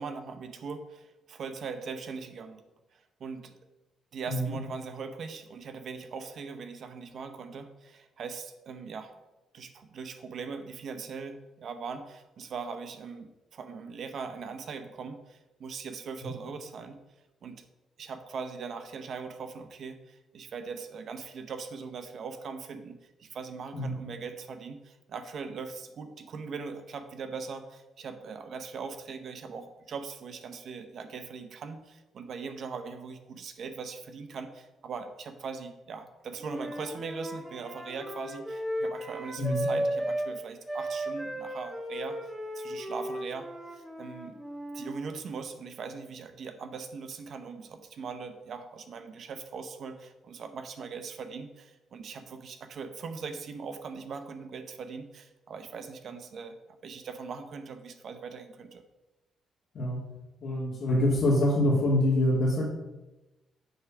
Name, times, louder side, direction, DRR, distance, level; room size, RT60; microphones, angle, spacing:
voice 1, 0.0-2.6 2.9-3.6 4.1-9.1 9.5-17.0 17.4-17.7 18.0-42.2 42.5-44.4 44.7-56.6 56.8-58.8, right 5 dB, 60° right, 8 dB, 0.7 m, -40 dB
voice 2, 4.3-4.6 16.2-16.3 23.7-23.9 39.4-39.7 59.7-60.0 60.4-62.6, left 1 dB, 65° left, -7 dB, 2.1 m, -25 dB
Wind instrument woodwind instrument, 36.4-40.3 40.7-45.0, equal, 15° right, 1.6 m, -35 dB
7.9 x 3.4 x 5.9 m, 1.0 s
cardioid pair, 90°, 0 cm